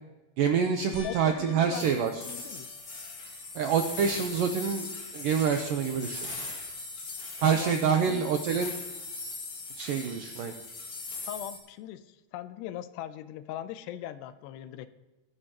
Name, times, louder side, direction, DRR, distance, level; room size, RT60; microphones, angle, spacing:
voice 1, 0.4-2.2 3.6-4.9 5.1-6.3 7.4-8.8 9.8-10.6, right 7 dB, 85° right, 5 dB, 2.0 m, -26 dB
sound 1, 0.9-3.5 4.1-4.7 5.1-5.2 8.4-8.5, left 3 dB, 60° left, 3.7 m, -49 dB
voice 2, 1.0-2.8 7.4-8.3 11.2-14.9, left 11 dB, 80° left, 12 dB, 2.7 m, -40 dB
sound 2, 1.7-11.6, left 3 dB, 40° left, 2.6 m, -40 dB
23.5 x 11.5 x 3.0 m, 1.1 s
omnidirectional pair, 5.0 m